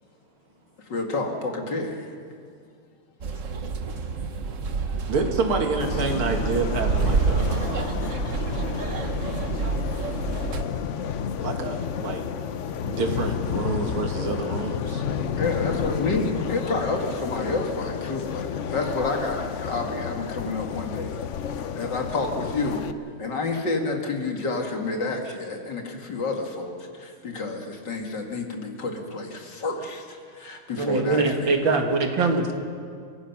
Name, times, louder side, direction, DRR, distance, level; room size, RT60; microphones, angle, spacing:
voice 1, 0.9-2.1 15.4-19.4 19.7-21.1 21.7-22.8 23.2-31.5, left 3 dB, 55° left, 2 dB, 2.6 m, -29 dB
sound 1, 3.2-10.6, right 4 dB, 45° right, 1.2 m, -28 dB
voice 2, 5.1-8.1 11.4-12.2 12.8-15.0, right 3 dB, 85° right, 4 dB, 2.7 m, -28 dB
sound 2, 5.8-22.9, left 7 dB, 85° left, 0.6 m, -31 dB
voice 3, 30.8-32.5, right 3 dB, 65° right, 4 dB, 2.5 m, -22 dB
29.5 x 16.0 x 5.9 m, 2.2 s
omnidirectional pair, 2.3 m